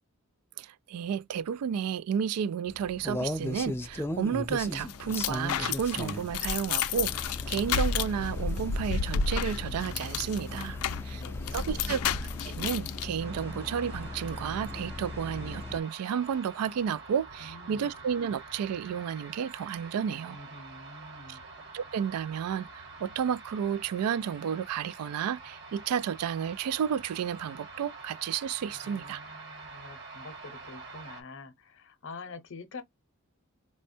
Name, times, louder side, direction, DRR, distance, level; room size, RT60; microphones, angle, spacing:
voice 1, 0.6-10.8 11.0-11.2 11.5-12.0 12.4-20.4 21.3-21.4 21.7-29.2, right 8 dB, 90° right, 0.3 m, -32 dB
sound 1, 2.7-15.8, left 2 dB, 10° left, 0.3 m, -38 dB
sound 2, 4.5-13.1, left 6 dB, 80° left, 0.4 m, -32 dB
voice 2, 10.7-11.9 17.4-17.8 20.3-21.4 28.7-32.8, left 3 dB, 60° left, 0.7 m, -47 dB
sound 3, 13.2-31.2, right 3 dB, 55° right, 1.1 m, -46 dB
4.2 x 2.2 x 2.6 m
head